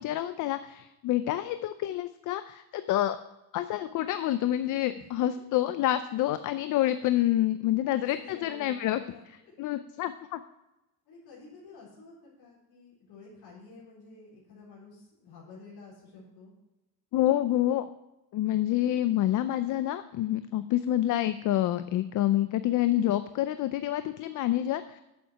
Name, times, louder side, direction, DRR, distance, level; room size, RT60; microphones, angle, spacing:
voice 1, 0.0-3.2 3.5-9.0 9.6-10.4 17.1-17.9 18.3-25.0, left 13 dB, 50° left, 12 dB, 0.4 m, -27 dB
voice 2, 7.8-9.5 11.1-16.5, left 3 dB, 70° left, -6 dB, 4.2 m, -51 dB
8.9 x 7.4 x 5.8 m, 0.98 s
cardioid pair, 175°, 39 cm